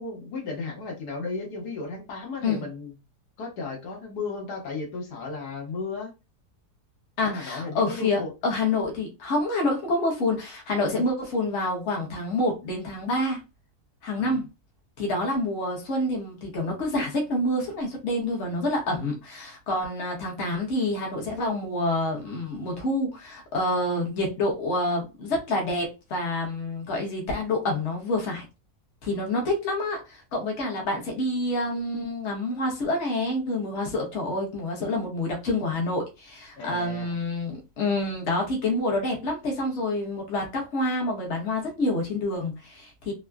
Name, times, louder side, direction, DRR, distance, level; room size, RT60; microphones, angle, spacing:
voice 1, 0.0-2.9 3.4-6.1 7.2-8.3 11.0-11.1 14.2-14.3 36.5-37.2, left 3 dB, 80° left, 1.5 m, -34 dB
voice 2, 7.2-13.4 14.0-14.5 15.0-28.4 29.0-43.1, left 2 dB, 50° left, 1.2 m, -27 dB
3.6 x 2.1 x 2.2 m
omnidirectional pair, 1.7 m